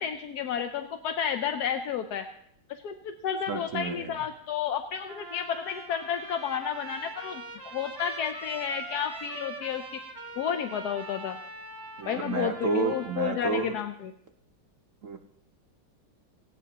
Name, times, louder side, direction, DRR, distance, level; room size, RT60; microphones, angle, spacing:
voice 1, 0.0-2.3 2.7-10.0 10.4-11.4 12.0-14.1, left 8 dB, 65° left, 7 dB, 1.0 m, -31 dB
voice 2, 3.5-4.2 12.0-13.7 15.0-15.2, right 4 dB, 50° right, 4 dB, 1.0 m, -30 dB
Trumpet, 5.1-13.9, right 2 dB, 35° right, 2.2 m, -43 dB
17.5 x 17.0 x 2.9 m, 0.68 s
omnidirectional pair, 2.3 m